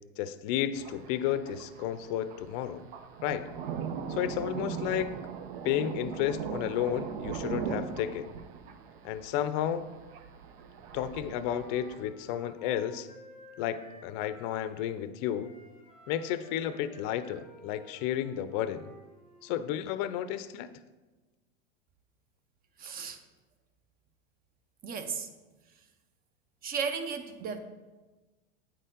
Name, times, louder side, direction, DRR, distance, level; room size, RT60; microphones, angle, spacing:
voice 1, 0.2-2.8 3.2-3.5 4.1-5.1 5.6-8.3 9.0-9.9 10.9-13.1 13.6-15.5 16.1-18.9 19.4-20.7, left 10 dB, 50° left, 13 dB, 0.5 m, -32 dB
Thunder, 0.7-12.0, right 7 dB, 70° right, 0.8 m, -40 dB
Wind instrument woodwind instrument, 10.9-15.0 15.3-19.5, right 1 dB, ahead, 1.7 m, -53 dB
voice 2, 22.8-23.2 24.8-25.3 26.6-27.6, right 6 dB, 30° right, 9 dB, 0.7 m, -34 dB
8.9 x 4.2 x 3.8 m, 1.2 s
supercardioid pair, 115°, 31 cm